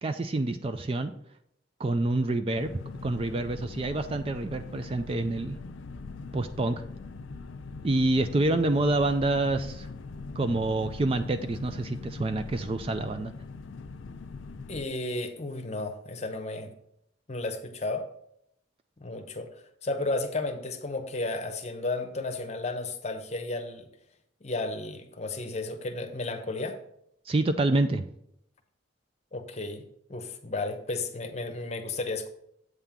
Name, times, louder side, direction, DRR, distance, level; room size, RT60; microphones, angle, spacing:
voice 1, 0.0-1.1 1.8-2.7 3.0-5.6 6.3-6.8 7.8-9.9 10.4-13.3 27.3-28.0, right 2 dB, 30° right, 9 dB, 0.3 m, -27 dB
sound 1, 2.5-14.9, left 4 dB, 80° left, 0.5 m, -41 dB
voice 2, 14.7-16.8 17.3-18.0 19.0-23.9 24.4-26.8 29.3-32.3, left 2 dB, 35° left, 7 dB, 0.8 m, -33 dB
7.9 x 3.7 x 5.8 m, 0.73 s
head